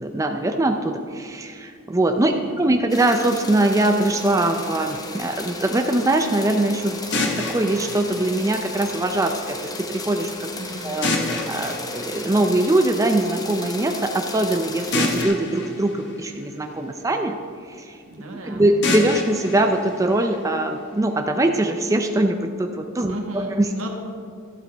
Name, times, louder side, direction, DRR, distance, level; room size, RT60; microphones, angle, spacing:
voice 1, 0.0-7.2 7.5-9.6 9.9-10.5 10.8-11.1 11.5-17.4 17.7-18.0 18.4-23.7, right 1 dB, 15° right, 5 dB, 0.4 m, -22 dB
voice 2, 2.2-2.6 10.5-10.9 18.1-18.7 23.1-23.9, right 2 dB, 80° right, 2 dB, 1.5 m, -35 dB
sound 1, 2.9-15.2, left 2 dB, 20° left, 0.8 m, -35 dB
sound 2, 7.1-9.1 11.0-13.0 14.9-17.1 18.8-20.8, left 2 dB, 55° left, 1.4 m, -28 dB
12.0 x 12.0 x 3.4 m, 2.2 s
head